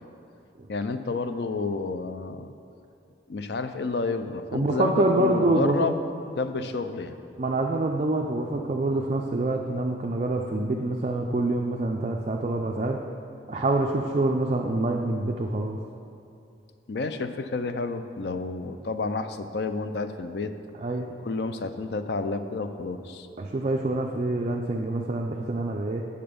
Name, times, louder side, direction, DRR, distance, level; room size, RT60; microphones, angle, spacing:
voice 1, 0.7-2.5 3.3-6.0 6.3-7.2 16.9-20.5 21.2-23.3, left 3 dB, 65° left, 9 dB, 0.5 m, -30 dB
voice 2, 4.5-5.9 7.4-13.0 13.5-15.8 20.8-21.2 23.4-26.0, right 2 dB, 35° right, 0 dB, 0.4 m, -26 dB
8.9 x 6.7 x 5.1 m, 2.6 s
head